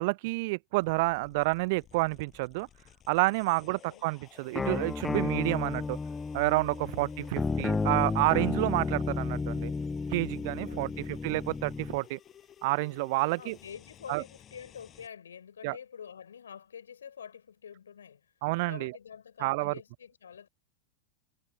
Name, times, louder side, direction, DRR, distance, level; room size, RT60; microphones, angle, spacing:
voice 1, 0.0-2.7 3.1-6.0 6.3-9.7 10.1-12.2 12.6-13.6 14.1-14.2 15.6-15.8 18.4-18.9 19.4-19.7, right 24 dB, 50° right, 0.4 m, -29 dB
sound 1, 0.8-15.1, left 10 dB, 25° left, 7.4 m, -55 dB
voice 2, 3.6-4.1 7.0-7.4 10.6-11.1 13.4-18.3 18.7-20.5, left 7 dB, 70° left, 4.7 m, -47 dB
sound 2, 4.6-12.0, left 4 dB, 10° left, 1.0 m, -32 dB
figure-of-eight pair, 90°, 0 cm